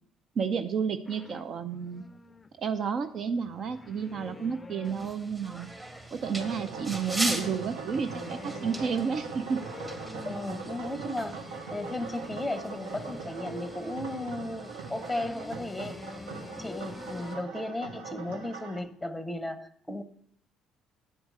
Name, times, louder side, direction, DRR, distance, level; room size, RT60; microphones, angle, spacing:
voice 1, 0.4-2.0 2.6-5.7 6.1-9.6, right 6 dB, 50° right, 9 dB, 0.5 m, -31 dB
sound 1, 1.0-5.5 6.2-17.4, left 3 dB, 25° left, 0.5 m, -47 dB
sound 2, 4.8-17.3, right 1 dB, 20° right, 1.8 m, -41 dB
sound 3, 6.2-18.8, right 5 dB, 75° right, 1.1 m, -41 dB
voice 2, 10.2-11.4 11.7-16.0 16.6-20.0, left 1 dB, 5° left, 11 dB, 0.8 m, -35 dB
9.0 x 4.6 x 6.5 m, 0.66 s
hypercardioid pair, 55°, 0 cm